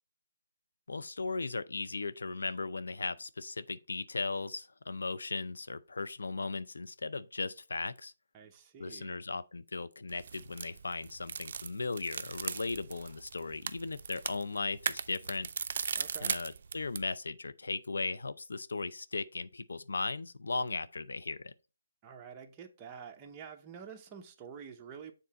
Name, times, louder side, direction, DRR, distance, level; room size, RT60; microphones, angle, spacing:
voice 1, 0.9-8.1 8.8-15.5 16.2-21.5, left 3 dB, 85° left, 0.5 m, -37 dB
voice 2, 8.3-9.2 16.0-16.4 22.0-25.1, right 7 dB, 20° right, 0.8 m, -48 dB
sound 1, 10.1-17.1, right 6 dB, 55° right, 0.4 m, -39 dB
7.0 x 3.7 x 4.1 m
hypercardioid pair, 165°, 0 cm